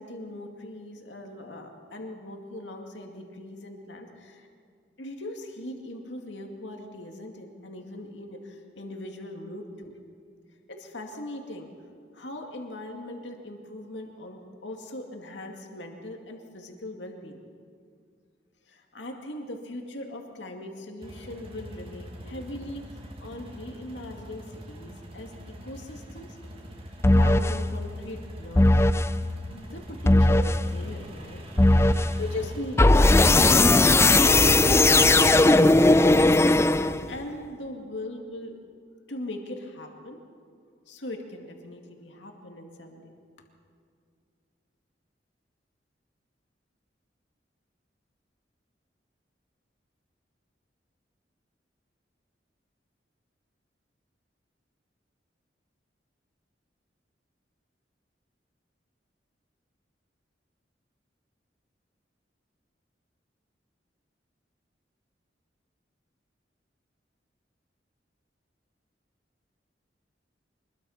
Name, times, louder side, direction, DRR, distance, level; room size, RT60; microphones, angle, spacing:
voice 1, 0.0-4.5 5.0-10.0 10.7-11.7 12.1-17.4 18.7-25.3 25.6-26.4 27.1-28.8 29.5-31.4 32.2-33.9 34.6-38.6 39.1-40.2 40.9-43.2, left 1 dB, 80° left, 2 dB, 2.3 m, -39 dB
sound 1, 21.0-34.1, equal, 35° right, 2.4 m, -44 dB
sound 2, 27.0-27.6 28.6-29.1 30.1-30.6 31.6-32.1 32.8-37.2, left 2 dB, 15° left, 0.5 m, -18 dB
25.0 x 21.5 x 5.8 m, 2.3 s
head